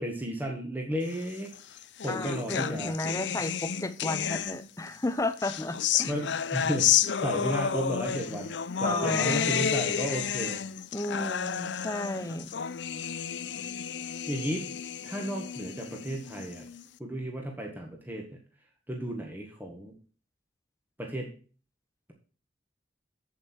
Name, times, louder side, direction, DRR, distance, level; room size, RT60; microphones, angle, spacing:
voice 1, 0.0-2.9 6.1-8.5 8.8-10.6 14.3-14.7 15.0-16.7 17.0-18.4 18.9-19.9 21.0-21.3, right 1 dB, 10° right, 1 dB, 1.6 m, -34 dB
sound 1, 1.5-4.9 5.4-16.8, left 8 dB, 70° left, 0.6 m, -31 dB
voice 2, 2.1-6.1 8.8-9.7 10.9-12.6, left 2 dB, 15° left, 11 dB, 0.7 m, -33 dB
8.4 x 7.6 x 4.5 m, 0.38 s
head